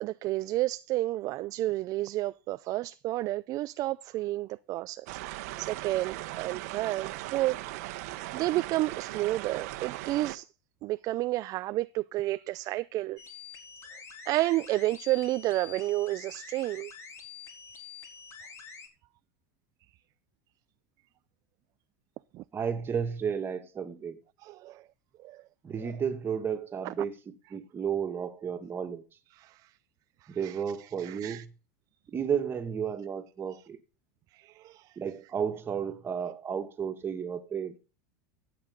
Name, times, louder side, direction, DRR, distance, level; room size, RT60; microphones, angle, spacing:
voice 1, 0.0-7.6 8.3-10.5 10.8-13.2 13.9-14.0 14.3-16.9 22.3-22.4 24.4-24.9 25.2-25.4 25.8-25.9 26.8-26.9 29.3-29.7 30.2-31.4 33.5-33.6 34.3-35.0, right 17 dB, 45° right, 0.5 m, -31 dB
sound 1, 5.1-10.4, right 17 dB, 70° right, 1.2 m, -38 dB
sound 2, 13.2-18.9, left 6 dB, 35° left, 3.8 m, -47 dB
voice 2, 22.5-24.2 25.6-29.0 30.3-31.5 32.1-33.8 35.0-37.7, right 7 dB, 25° right, 2.2 m, -33 dB
14.0 x 8.6 x 4.0 m
supercardioid pair, 120°, 9 cm